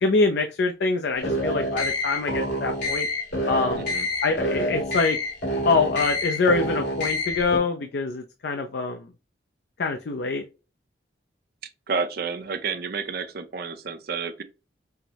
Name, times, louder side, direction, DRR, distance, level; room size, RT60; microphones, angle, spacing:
voice 1, 0.0-3.1 3.5-3.8 4.2-5.2 5.6-9.1 9.8-10.4, left 3 dB, 60° left, 0.4 m, -24 dB
sound 1, 1.2-7.6, left 1 dB, 80° left, 2.2 m, -27 dB
voice 2, 3.7-4.1 11.9-14.4, right 5 dB, 55° right, 0.5 m, -30 dB
5.6 x 2.0 x 2.8 m
head